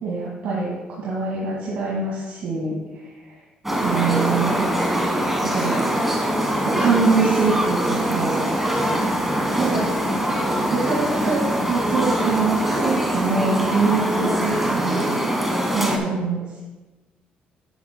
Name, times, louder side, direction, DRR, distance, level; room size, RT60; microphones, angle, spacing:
voice 1, 0.0-2.8 3.8-4.7 5.4-5.7 6.8-8.4 9.6-9.8 10.7-15.1 15.4-16.6, right 4 dB, 75° right, -6 dB, 2.0 m, -24 dB
sound 1, 3.6-16.0, right 1 dB, 10° right, 1.4 m, -23 dB
11.0 x 9.4 x 2.2 m, 1.2 s
cardioid pair, 120°, 3 cm